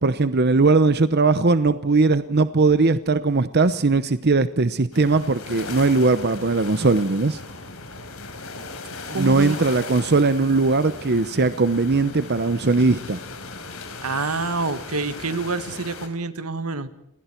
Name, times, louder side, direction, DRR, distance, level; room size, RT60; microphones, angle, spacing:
voice 1, 0.0-7.4 9.1-13.2, right 3 dB, 50° right, 12 dB, 0.9 m, -19 dB
sound 1, 4.9-16.1, left 3 dB, 70° left, 4.5 m, -37 dB
voice 2, 9.1-9.6 14.0-16.9, right 3 dB, 85° right, 11 dB, 1.8 m, -27 dB
28.5 x 20.0 x 4.6 m, 0.80 s
head